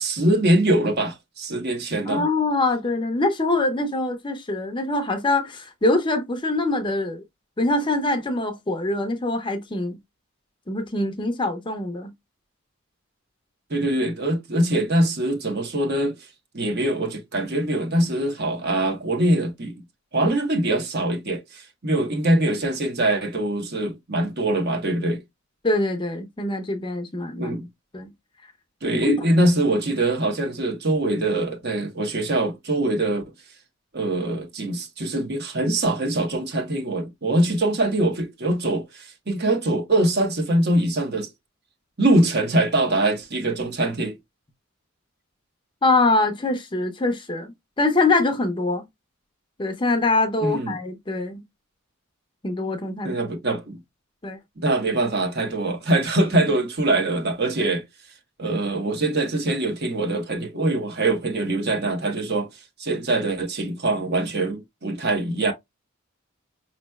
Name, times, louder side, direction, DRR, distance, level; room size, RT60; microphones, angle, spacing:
voice 1, 0.0-2.2 13.7-16.1 16.5-19.7 20.1-25.2 27.4-27.7 28.8-33.2 33.9-41.3 42.0-44.1 50.4-50.8 53.0-53.8 54.6-57.8 58.4-62.5 62.8-65.5, right 1 dB, 50° right, 1.1 m, -23 dB
voice 2, 2.1-7.2 7.6-10.0 10.7-12.1 25.6-27.6 27.9-28.1 28.8-29.1 45.8-48.8 49.6-51.4 52.4-53.2 54.2-54.4 56.4-56.5, left 2 dB, 20° left, 0.6 m, -24 dB
5.3 x 3.1 x 2.2 m
head